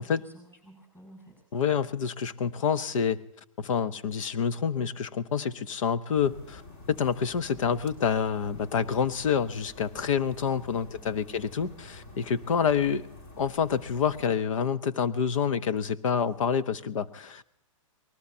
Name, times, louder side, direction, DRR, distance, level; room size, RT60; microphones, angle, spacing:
voice 1, 0.0-1.5 10.9-11.5, right 1 dB, 10° left, 3 dB, 6.8 m, -54 dB
voice 2, 1.5-3.2 3.6-6.6 6.9-13.1 13.4-17.4, left 7 dB, 70° left, 13 dB, 0.9 m, -27 dB
sound 1, 6.1-14.3, left 2 dB, 30° left, 1.9 m, -48 dB
26.0 x 19.5 x 2.8 m, 0.77 s
hypercardioid pair, 165°, 17 cm